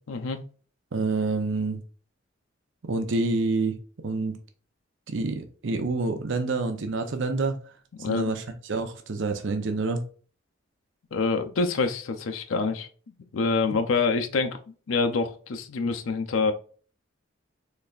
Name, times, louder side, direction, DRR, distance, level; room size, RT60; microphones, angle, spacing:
voice 1, 0.1-0.4 8.0-8.3 11.1-12.9 13.3-14.6 14.9-16.5, left 4 dB, 85° left, 6 dB, 0.5 m, -26 dB
voice 2, 0.9-1.8 2.8-3.8 4.0-4.3 5.1-7.6 8.1-8.4 8.7-10.0 13.7-13.8, right 3 dB, 70° right, 6 dB, 0.6 m, -27 dB
4.0 x 3.2 x 2.4 m, 0.41 s
head